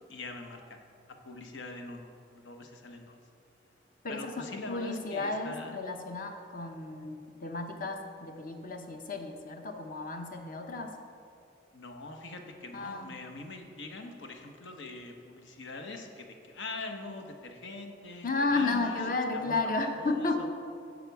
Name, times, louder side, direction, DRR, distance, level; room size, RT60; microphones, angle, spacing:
voice 1, 0.1-0.8 1.2-3.2 4.1-5.8 11.7-19.0 19.3-20.5, left 3 dB, 80° left, 4 dB, 1.0 m, -43 dB
voice 2, 4.0-10.9 12.7-13.2 18.2-20.5, left 3 dB, 50° left, 5 dB, 0.8 m, -33 dB
15.0 x 5.1 x 4.7 m, 2.4 s
head